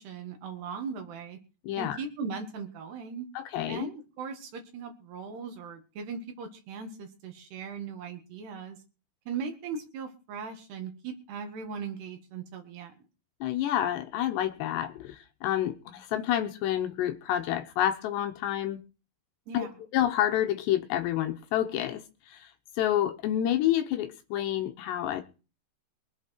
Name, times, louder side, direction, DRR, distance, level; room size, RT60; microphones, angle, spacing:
voice 1, 0.0-1.4 1.8-3.3 3.7-8.8 9.3-12.9 19.5-19.7, right 5 dB, 65° right, 3.7 m, -38 dB
voice 2, 1.6-2.0 3.4-3.9 13.4-18.8 19.5-25.2, left 12 dB, 75° left, 2.8 m, -29 dB
23.0 x 8.2 x 4.5 m
omnidirectional pair, 5.5 m